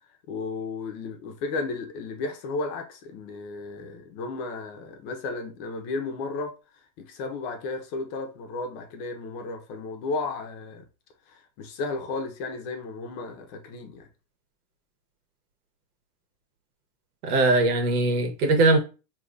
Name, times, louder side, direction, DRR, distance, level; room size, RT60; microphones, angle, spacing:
voice 1, 0.3-6.5 7.0-10.8 11.3-14.1, left 3 dB, 50° left, 1.1 m, -34 dB
voice 2, 17.2-18.8, right 2 dB, 70° right, 1.6 m, -21 dB
4.7 x 3.2 x 2.6 m
supercardioid pair, 150°, 46 cm